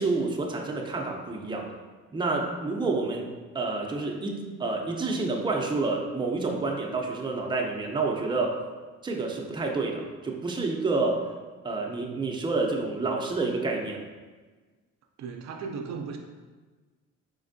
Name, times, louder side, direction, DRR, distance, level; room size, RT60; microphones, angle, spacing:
voice 1, 0.0-1.7 2.1-3.3 3.5-8.6 9.0-11.2 11.6-14.0, right 3 dB, 15° right, 0 dB, 0.5 m, -28 dB
voice 2, 15.2-16.2, right 5 dB, 65° right, 3 dB, 0.4 m, -36 dB
4.3 x 3.2 x 2.6 m, 1.4 s
cardioid pair, 90°, 30 cm